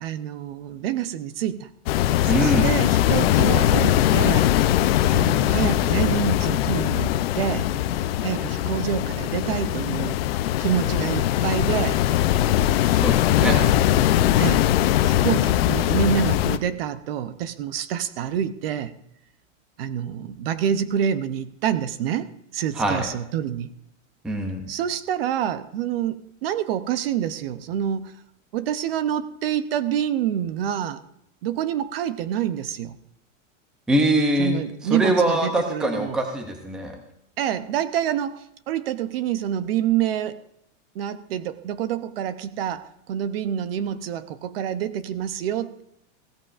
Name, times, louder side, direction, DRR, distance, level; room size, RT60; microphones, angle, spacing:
voice 1, 0.0-1.7 2.2-4.5 5.1-7.7 8.2-10.2 10.6-12.0 13.5-14.6 15.1-18.9 19.8-23.7 24.7-28.2 28.5-31.0 31.4-33.0 34.4-36.2 37.4-40.4 40.9-45.8, right 10 dB, 50° right, 14 dB, 0.7 m, -27 dB
sound 1, 1.9-16.6, left 12 dB, 50° left, 0.6 m, -21 dB
voice 2, 2.3-2.7 13.0-13.6 22.8-23.1 24.2-24.6 33.9-34.6 34.9-36.9, right 1 dB, ahead, 4 dB, 0.5 m, -23 dB
16.0 x 14.0 x 2.5 m, 0.78 s
supercardioid pair, 170°, 39 cm